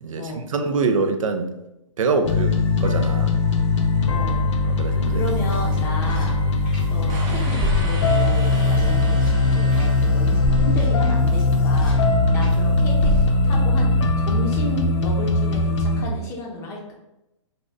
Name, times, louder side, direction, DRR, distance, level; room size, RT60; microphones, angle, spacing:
voice 1, 0.0-1.5 2.0-3.4 4.6-5.3, right 4 dB, 85° right, 7 dB, 0.4 m, -25 dB
sound 1, 2.2-16.0, left 3 dB, 65° left, 0.5 m, -20 dB
voice 2, 4.0-4.4 5.1-6.4 6.9-16.9, left 2 dB, 15° left, -1 dB, 0.5 m, -33 dB
sound 2, 5.0-7.2 7.5-12.6 13.0-13.7, left 2 dB, 5° right, 1.0 m, -31 dB
sound 3, 7.1-11.3, right 2 dB, 35° right, 0.6 m, -36 dB
2.6 x 2.5 x 3.2 m, 0.92 s
hypercardioid pair, 145°, 16 cm